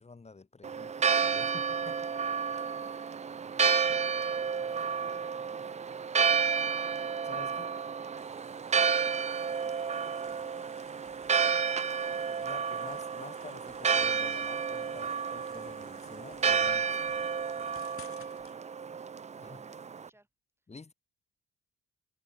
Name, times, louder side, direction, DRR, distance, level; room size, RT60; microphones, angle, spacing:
voice 1, 0.0-2.0 7.2-7.7 12.4-17.0 19.4-19.6 20.7-20.9, left 3 dB, 20° left, 1.2 m, -49 dB
Church bell, 0.6-20.1, right 6 dB, 25° right, 0.5 m, -31 dB
sound 1, 8.2-18.6, left 8 dB, 45° left, 2.1 m, -58 dB
voice 2, 17.7-20.3, right 1 dB, 10° right, 5.9 m, -66 dB
cardioid pair, 90°, 30 cm